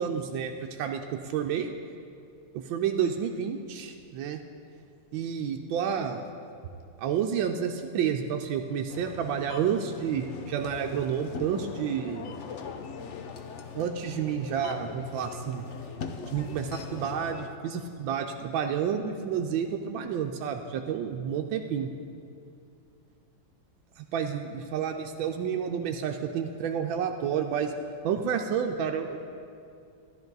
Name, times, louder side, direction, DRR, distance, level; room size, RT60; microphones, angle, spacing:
voice 1, 0.0-1.7 2.5-4.4 5.1-6.2 7.0-12.3 13.7-15.6 16.3-21.9 24.0-27.7 28.0-29.2, right 8 dB, 85° right, 4 dB, 1.4 m, -30 dB
sound 1, 8.9-17.5, left 6 dB, 80° left, 0.6 m, -41 dB
13.0 x 11.0 x 3.9 m, 2.5 s
omnidirectional pair, 2.1 m